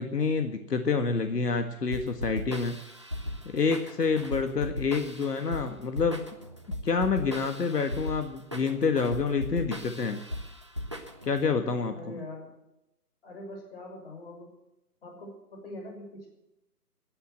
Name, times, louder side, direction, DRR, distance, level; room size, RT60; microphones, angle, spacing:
voice 1, 0.0-2.8 3.5-6.3 6.8-10.2 11.2-12.2, left 5 dB, 80° left, 6 dB, 1.8 m, -28 dB
sound 1, 1.9-11.5, left 1 dB, 20° right, 0.6 m, -37 dB
voice 2, 11.9-12.5 13.2-14.5 15.0-16.3, left 1 dB, 35° left, 1 dB, 6.3 m, -43 dB
16.0 x 10.0 x 7.9 m, 0.87 s
hypercardioid pair, 165°, 47 cm